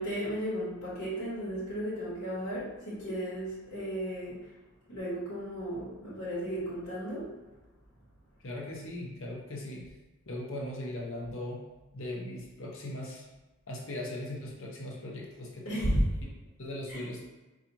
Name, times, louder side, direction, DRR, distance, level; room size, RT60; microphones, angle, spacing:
voice 1, 0.0-4.5 4.9-7.3 15.6-16.1 16.9-17.1, equal, 90° left, -9 dB, 1.2 m, -34 dB
voice 2, 8.4-9.9 10.3-11.6 11.9-13.2 13.7-15.9 16.6-17.3, left 1 dB, 65° left, -2 dB, 0.9 m, -39 dB
4.9 x 2.4 x 2.9 m, 1.1 s
head